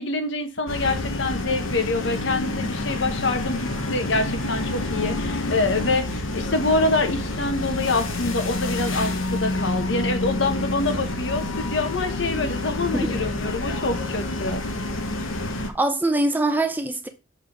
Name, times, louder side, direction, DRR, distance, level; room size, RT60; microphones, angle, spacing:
voice 1, 0.0-14.6, left 3 dB, 65° left, 1.1 m, -26 dB
sound 1, 0.7-15.7, left 2 dB, 90° left, 1.1 m, -28 dB
voice 2, 15.7-17.1, right 2 dB, 10° right, 0.6 m, -23 dB
6.7 x 4.0 x 4.8 m
head